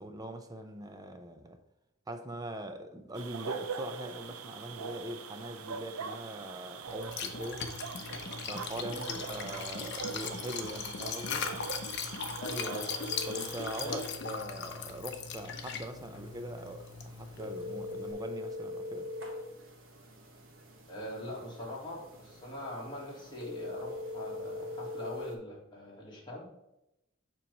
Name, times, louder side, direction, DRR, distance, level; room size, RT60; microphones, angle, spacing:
voice 1, 0.0-1.6 2.1-7.7 8.5-11.5 13.3-19.1, right 1 dB, 20° right, 0.5 m, -42 dB
sound 1, 3.1-14.1, right 6 dB, 90° right, 0.5 m, -42 dB
Liquid, 6.9-18.1, left 5 dB, 55° left, 0.7 m, -39 dB
voice 2, 12.4-12.9 13.8-14.0 20.9-26.5, left 1 dB, 20° left, 1.7 m, -42 dB
sound 2, 13.1-25.4, left 2 dB, 65° right, 1.1 m, -43 dB
7.2 x 3.1 x 5.2 m
head